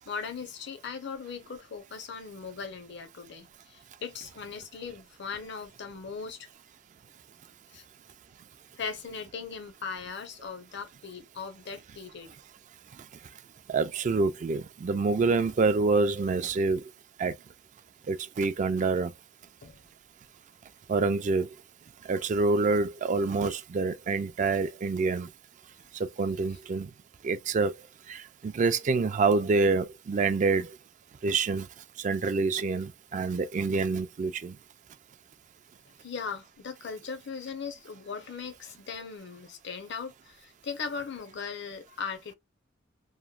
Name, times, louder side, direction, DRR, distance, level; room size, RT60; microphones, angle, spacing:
voice 1, 0.0-6.5 7.7-7.8 8.8-12.3 19.6-19.8 36.0-42.3, left 5 dB, 60° left, 0.6 m, -39 dB
voice 2, 13.7-16.9 17.2-17.4 18.1-19.1 20.9-21.5 22.0-25.3 25.9-26.9 27.2-27.8 28.1-30.8 31.2-31.7 32.0-34.6, right 4 dB, 40° right, 0.3 m, -27 dB
2.9 x 2.1 x 2.3 m
head